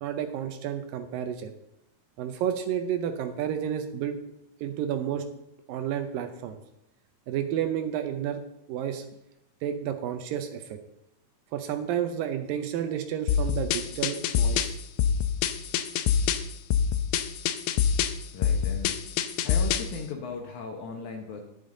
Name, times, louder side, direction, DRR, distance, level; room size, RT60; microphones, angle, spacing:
voice 1, 0.0-1.5 2.2-4.2 4.6-5.3 5.7-6.6 7.3-8.4 8.7-9.1 9.6-10.8 11.5-14.8, right 9 dB, 75° right, 8 dB, 2.2 m, -31 dB
sound 1, 13.3-20.0, left 8 dB, 90° left, 2.6 m, -26 dB
voice 2, 18.3-19.0 19.4-21.4, left 4 dB, 70° left, 3 dB, 2.0 m, -37 dB
10.5 x 10.0 x 3.8 m, 0.87 s
omnidirectional pair, 4.4 m